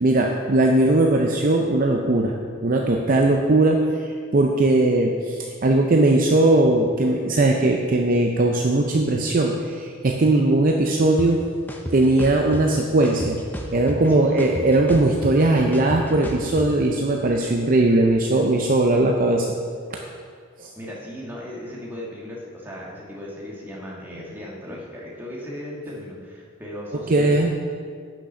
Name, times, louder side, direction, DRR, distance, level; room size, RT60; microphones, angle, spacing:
voice 1, 0.0-2.4 2.6-11.4 11.9-13.4 13.7-19.5 20.6-20.7 27.1-27.5, right 2 dB, 40° right, 1 dB, 0.5 m, -19 dB
sound 1, 11.2-11.3 11.7-12.6 13.0-14.1 14.4-16.7, equal, 10° left, 0.6 m, -32 dB
voice 2, 14.1-14.6 20.8-27.5, left 1 dB, 10° right, -5 dB, 1.6 m, -36 dB
8.7 x 6.0 x 5.5 m, 2.1 s
head